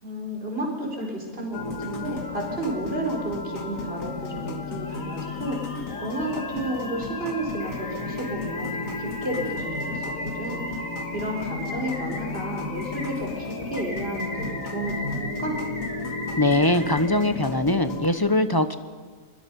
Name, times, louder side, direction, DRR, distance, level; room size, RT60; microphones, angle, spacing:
voice 1, 0.0-5.6 6.0-10.7 11.1-15.6, right 1 dB, 40° right, -1 dB, 4.4 m, -31 dB
sound 1, 1.0-1.1 4.4-17.3, left 1 dB, 85° left, 4.2 m, -38 dB
sound 2, 1.5-18.1, left 4 dB, 65° left, 2.0 m, -34 dB
voice 2, 16.4-18.8, left 1 dB, 20° left, 10 dB, 0.8 m, -21 dB
24.5 x 22.5 x 5.4 m, 1.5 s
omnidirectional pair, 1.5 m